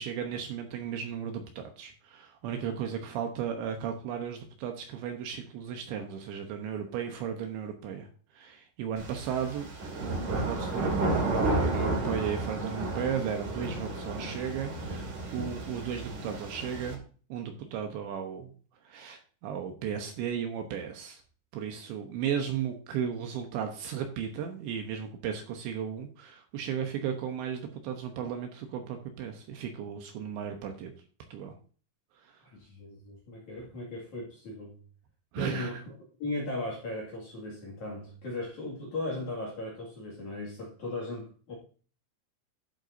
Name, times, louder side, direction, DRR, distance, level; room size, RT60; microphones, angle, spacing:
voice 1, 0.0-8.1 8.3-17.0 17.3-18.5 18.8-21.2 21.5-30.9 31.3-31.6 32.2-32.4 35.3-35.8, right 8 dB, 75° right, 2.9 m, -35 dB
sound 1, 9.0-16.9, right 2 dB, 45° right, 3.4 m, -32 dB
voice 2, 32.4-34.8 35.4-35.8 36.2-41.5, left 2 dB, 50° left, 2.7 m, -37 dB
11.5 x 8.0 x 2.6 m
omnidirectional pair, 5.9 m